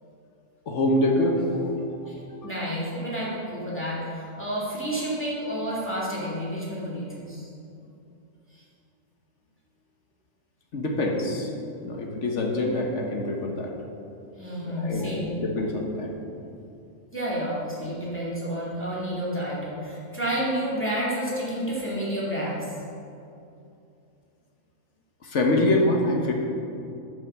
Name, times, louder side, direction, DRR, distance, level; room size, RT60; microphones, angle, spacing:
voice 1, 0.7-2.0 10.7-11.5 11.8-13.7 14.6-16.1 25.2-26.3, left 1 dB, 50° left, 1 dB, 1.3 m, -25 dB
voice 2, 2.4-7.5 14.4-15.4 17.1-22.7, equal, 5° left, -7 dB, 2.2 m, -30 dB
9.5 x 5.8 x 6.6 m, 2.7 s
omnidirectional pair, 1.7 m